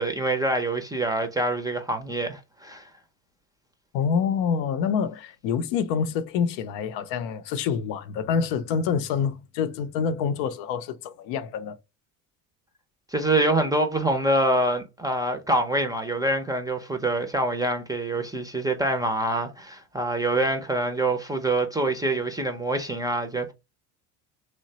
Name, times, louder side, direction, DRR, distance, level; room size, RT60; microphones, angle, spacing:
voice 1, 0.0-2.9 13.1-23.5, right 1 dB, 10° right, 0.5 m, -25 dB
voice 2, 3.9-11.8, left 6 dB, 70° left, 0.6 m, -27 dB
3.0 x 2.2 x 2.7 m
supercardioid pair, 80°, 46 cm